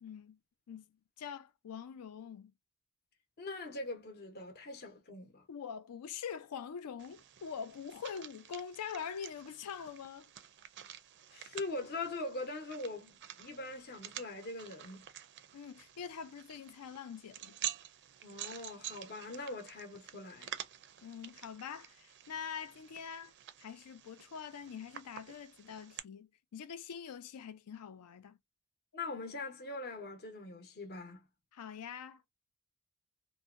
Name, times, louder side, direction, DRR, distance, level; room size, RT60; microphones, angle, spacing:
voice 1, 0.0-0.4 0.7-0.8 1.2-2.5 5.5-10.3 15.5-17.6 21.0-23.3 23.6-28.4 31.5-32.2, left 7 dB, 80° left, 0.4 m, -44 dB
voice 2, 3.4-5.4 11.3-13.1 13.4-15.0 18.2-20.5 28.9-31.2, left 2 dB, 45° left, 0.7 m, -42 dB
sound 1, 7.0-26.0, right 11 dB, 50° right, 0.4 m, -49 dB
2.6 x 2.1 x 2.4 m
head